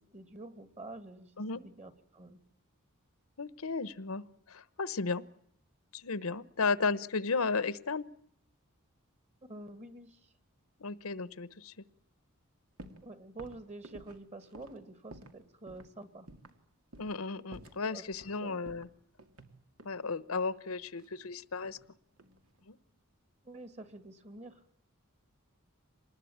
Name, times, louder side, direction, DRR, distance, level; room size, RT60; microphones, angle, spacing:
voice 1, 0.0-2.4 9.4-10.3 13.0-16.3 17.9-18.1 18.4-18.8 23.4-24.6, right 2 dB, 30° right, 10 dB, 2.2 m, -48 dB
voice 2, 3.4-5.2 5.9-8.0 10.8-11.8 17.0-18.9 19.8-21.8 22.7-22.8, left 4 dB, 80° left, 16 dB, 1.0 m, -34 dB
sound 1, 12.8-13.1 13.4-15.4 15.7-15.9 16.3-16.6 16.9-17.2 17.5-18.4 18.7-20.0 21.0-21.9 22.2-22.6, right 1 dB, 90° right, 2.3 m, -52 dB
26.0 x 20.0 x 8.7 m, 0.68 s
head